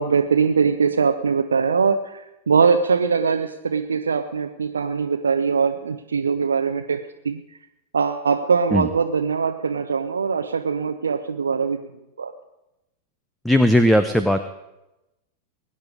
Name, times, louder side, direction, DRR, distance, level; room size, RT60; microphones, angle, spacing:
voice 1, 0.0-7.0 7.2-7.4 7.9-11.8 12.2-12.3, right 5 dB, 70° right, 5 dB, 0.8 m, -21 dB
voice 2, 13.4-14.4, equal, 5° left, 9 dB, 0.8 m, -17 dB
22.5 x 10.0 x 4.9 m, 0.96 s
figure-of-eight pair, 90°, 0 cm